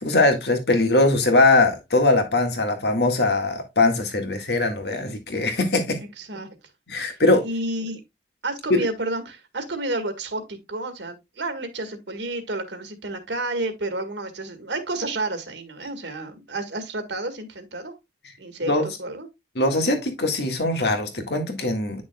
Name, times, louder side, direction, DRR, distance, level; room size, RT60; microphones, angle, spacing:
voice 1, 0.0-6.0 6.9-7.4 8.7-8.9 18.6-18.9 19.6-22.0, left 2 dB, 70° left, 1.8 m, -21 dB
voice 2, 6.2-6.5 7.0-8.0 8.4-17.9 18.4-19.3, right 2 dB, 90° right, 1.8 m, -31 dB
9.9 x 6.2 x 2.3 m
head